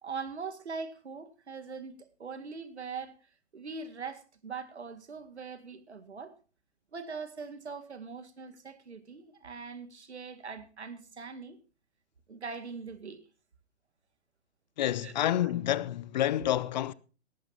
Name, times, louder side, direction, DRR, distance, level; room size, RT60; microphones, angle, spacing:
voice 1, 0.0-3.2 3.5-6.4 6.9-11.6 12.3-13.2 15.0-15.1 15.4-15.5, right 5 dB, 75° right, 2.1 m, -41 dB
voice 2, 14.8-16.9, left 12 dB, 40° left, 0.7 m, -28 dB
18.0 x 15.0 x 2.8 m
figure-of-eight pair, 125°, 34 cm